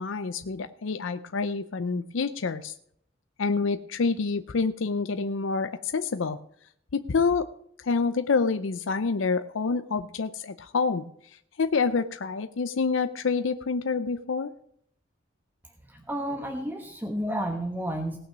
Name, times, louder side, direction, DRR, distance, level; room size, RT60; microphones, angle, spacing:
voice 1, 0.0-2.7 3.4-6.4 6.9-7.5 7.8-14.5, left 4 dB, 85° left, 10 dB, 0.6 m, -27 dB
voice 2, 15.9-18.2, right 1 dB, 10° right, 3 dB, 1.1 m, -31 dB
17.5 x 6.1 x 6.1 m, 0.70 s
head